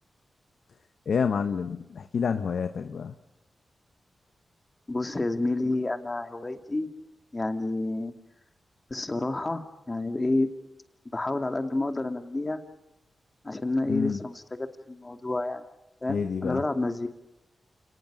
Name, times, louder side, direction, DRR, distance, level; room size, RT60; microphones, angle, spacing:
voice 1, 1.1-3.1 13.9-14.2 16.1-16.6, left 6 dB, 75° left, 9 dB, 1.1 m, -28 dB
voice 2, 4.9-6.9 7.3-8.1 8.9-10.5 11.1-12.6 13.4-15.6 16.0-17.1, left 2 dB, 30° left, 7 dB, 2.4 m, -29 dB
29.0 x 19.0 x 6.8 m, 0.91 s
cardioid pair, 60°, 0 cm